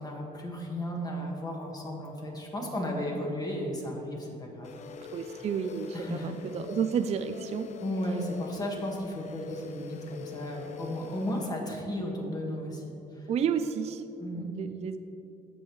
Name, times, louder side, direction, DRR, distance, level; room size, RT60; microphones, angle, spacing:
voice 1, 0.0-4.7 5.9-6.3 7.7-13.3 14.2-14.5, equal, 20° left, 0 dB, 1.7 m, -34 dB
sound 1, 4.6-11.5, left 6 dB, 45° left, 0.5 m, -44 dB
voice 2, 5.1-7.7 13.3-14.0 14.3-15.0, right 7 dB, 40° right, 9 dB, 0.4 m, -31 dB
15.0 x 5.3 x 3.2 m, 2.7 s
cardioid pair, 110°, 17 cm